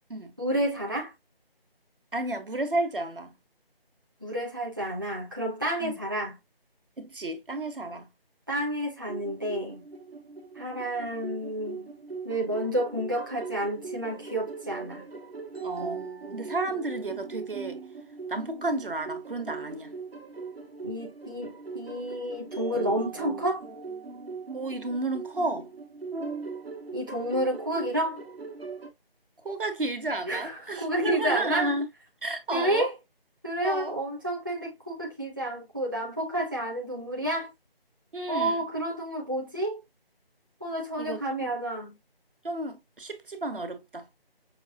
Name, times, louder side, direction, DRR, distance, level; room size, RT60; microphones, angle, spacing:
voice 1, 0.4-1.1 4.2-6.4 8.5-9.8 10.6-11.9 12.2-15.1 20.8-23.6 26.9-28.2 30.3-31.7 32.5-32.9 33.4-37.5 38.3-39.8 40.6-42.0, right 1 dB, 20° right, 0.7 m, -30 dB
voice 2, 2.1-3.4 5.8-6.0 7.0-8.1 15.6-16.0 16.3-17.8 18.3-19.9 24.5-25.7 29.4-31.9 32.2-32.9 33.6-34.0 38.1-38.6 41.0-41.5 42.4-44.1, right 2 dB, 60° right, 1.3 m, -32 dB
sound 1, 9.1-28.9, right 4 dB, 80° right, 1.3 m, -40 dB
6.4 x 2.5 x 2.8 m
figure-of-eight pair, 165°, 30 cm